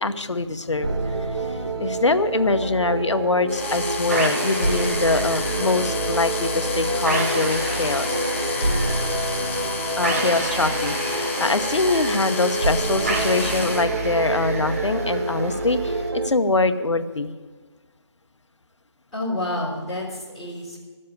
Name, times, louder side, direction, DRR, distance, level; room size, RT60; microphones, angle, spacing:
voice 1, 0.0-8.2 10.0-17.3, left 3 dB, 75° left, 10 dB, 1.0 m, -24 dB
sound 1, 0.8-16.3, right 2 dB, 55° right, 1.4 m, -27 dB
sound 2, 3.5-13.9, left 4 dB, 25° left, 0.9 m, -31 dB
sound 3, 4.1-16.1, right 2 dB, 30° right, 1.3 m, -32 dB
voice 2, 19.1-20.8, left 1 dB, ahead, -16 dB, 3.5 m, -29 dB
13.0 x 7.6 x 9.4 m, 1.4 s
figure-of-eight pair, 165°, 15 cm